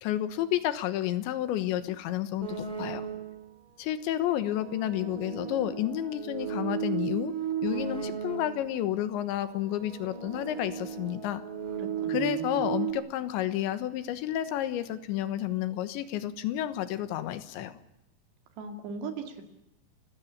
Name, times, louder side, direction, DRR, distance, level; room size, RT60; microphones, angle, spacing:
voice 1, 0.0-3.1 3.8-7.3 7.6-11.4 12.1-17.8, left 12 dB, 90° left, 12 dB, 3.5 m, -31 dB
sound 1, 2.4-3.5 4.3-8.8 9.5-12.9, right 9 dB, 30° right, 2.0 m, -35 dB
voice 2, 11.8-12.7 18.6-19.4, right 3 dB, 70° right, 6 dB, 4.5 m, -39 dB
28.0 x 16.0 x 8.6 m, 0.85 s
omnidirectional pair, 5.1 m